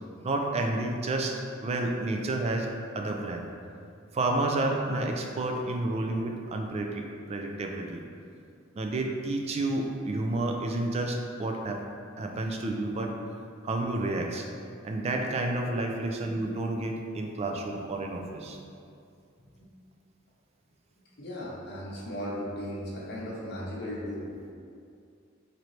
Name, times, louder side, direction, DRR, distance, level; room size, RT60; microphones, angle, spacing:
voice 1, 0.2-3.5 4.1-8.0 8.8-11.8 12.2-13.1 13.6-14.5 14.8-18.6, right 2 dB, 30° right, 2 dB, 0.3 m, -30 dB
voice 2, 21.2-24.3, equal, 55° left, -4 dB, 0.8 m, -36 dB
4.3 x 2.6 x 3.1 m, 2.4 s
head